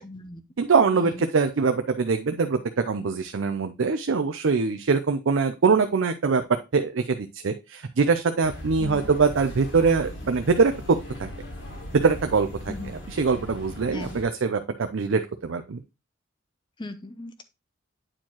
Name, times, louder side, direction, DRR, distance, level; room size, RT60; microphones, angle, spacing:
voice 1, 0.0-0.4 0.9-1.2 8.8-9.1 12.7-12.9 13.9-14.2 16.8-17.4, left 2 dB, 20° left, 10 dB, 0.6 m, -38 dB
voice 2, 0.6-11.3 11.9-12.5 12.8-14.6 14.9-15.8, right 4 dB, 70° right, 8 dB, 0.5 m, -23 dB
sound 1, 8.4-14.2, left 1 dB, 65° left, 2.0 m, -38 dB
8.8 x 4.4 x 3.0 m, 0.26 s
head